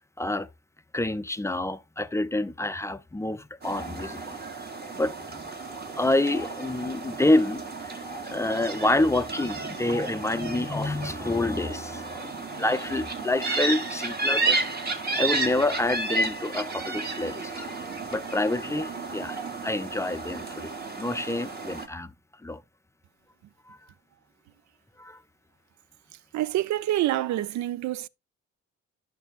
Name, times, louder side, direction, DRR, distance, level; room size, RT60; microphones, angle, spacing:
voice 1, 0.2-0.5 0.9-4.4 5.0-5.5 5.9-14.6 15.2-17.5 18.1-20.7 21.0-22.1 22.4-22.6 23.7-23.8 25.0-25.2, left 2 dB, 10° left, 0.5 m, -28 dB
sound 1, 3.6-21.9, right 3 dB, 30° right, 1.5 m, -32 dB
voice 2, 26.3-28.1, right 14 dB, 70° right, 0.5 m, -27 dB
11.5 x 6.0 x 2.4 m
cardioid pair, 90°, 30 cm